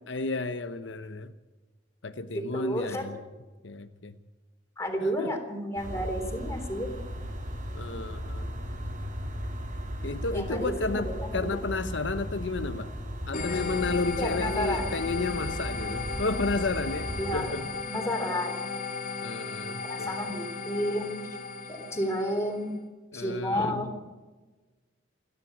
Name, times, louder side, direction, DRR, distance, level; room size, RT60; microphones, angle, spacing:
voice 1, 0.1-1.3 2.0-3.2 3.6-4.2 5.2-5.3 7.7-8.5 10.0-12.9 13.3-17.7 19.2-20.1 23.1-23.9, left 3 dB, 75° left, 9 dB, 0.9 m, -32 dB
voice 2, 2.3-3.1 4.8-6.9 10.3-11.5 14.2-14.9 17.2-17.6 17.9-18.6 19.8-21.2 21.7-22.7 23.1-23.9, equal, 15° left, 3 dB, 3.5 m, -31 dB
sound 1, 5.8-17.5, equal, 40° right, 3.4 m, -36 dB
sound 2, 13.3-22.7, left 4 dB, 45° left, 3.0 m, -36 dB
28.5 x 10.5 x 8.5 m, 1.2 s
head